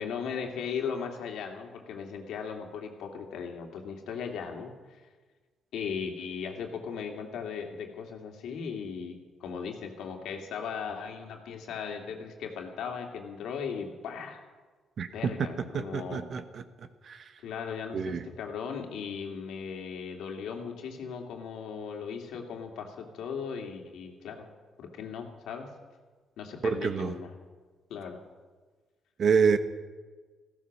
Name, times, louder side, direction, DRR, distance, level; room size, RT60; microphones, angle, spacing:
voice 1, 0.0-4.7 5.7-14.4 15.1-16.3 17.4-24.5 24.8-25.8 26.4-27.3 27.9-28.2, left 6 dB, 80° left, 3 dB, 2.6 m, -37 dB
voice 2, 15.0-16.6 17.0-17.2 17.9-18.2 26.6-27.1 29.2-29.6, right 6 dB, 55° right, 10 dB, 1.2 m, -27 dB
15.5 x 14.5 x 6.3 m, 1.4 s
cardioid pair, 90°, 0 cm